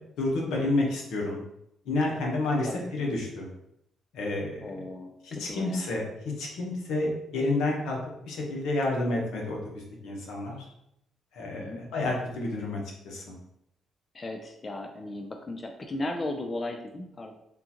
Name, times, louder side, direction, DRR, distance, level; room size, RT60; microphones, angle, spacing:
voice 1, 0.2-1.4 1.9-2.7 3.0-3.5 4.1-4.6 5.2-6.0 6.4-8.0 8.3-10.7 11.3-13.4, left 2 dB, 85° left, -1 dB, 0.9 m, -29 dB
voice 2, 4.6-5.9 11.5-11.9 14.1-17.3, left 2 dB, 35° left, 4 dB, 0.4 m, -36 dB
3.7 x 2.4 x 2.8 m, 0.78 s
cardioid pair, 90°, 0 cm